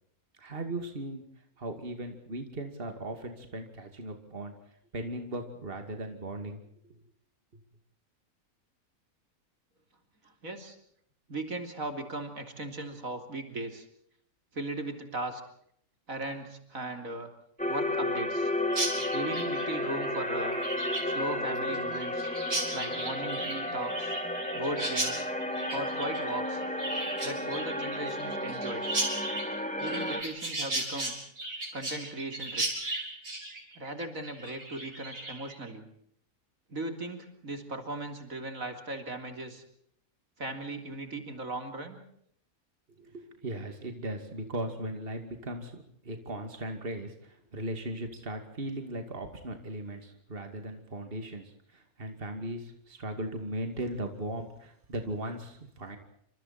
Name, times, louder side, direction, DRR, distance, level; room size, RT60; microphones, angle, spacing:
voice 1, 0.4-1.2 1.6-4.5 4.9-6.9 43.0-56.0, right 1 dB, 40° right, 5 dB, 2.7 m, -38 dB
voice 2, 10.2-10.8 11.3-13.9 14.5-15.4 16.1-17.3 17.7-18.5 19.1-20.6 21.1-22.3 22.7-24.2 24.5-25.2 25.7-26.6 27.2-28.9 29.8-31.1 31.7-32.9 33.8-35.9 36.7-39.6 40.4-42.0, right 2 dB, 70° right, 5 dB, 3.6 m, -37 dB
sound 1, 17.6-30.2, left 1 dB, 5° left, 2.8 m, -33 dB
Chirp tweet, 18.7-35.6, right 2 dB, 90° right, 5.9 m, -36 dB
28.5 x 26.5 x 4.4 m, 0.68 s
omnidirectional pair, 1.5 m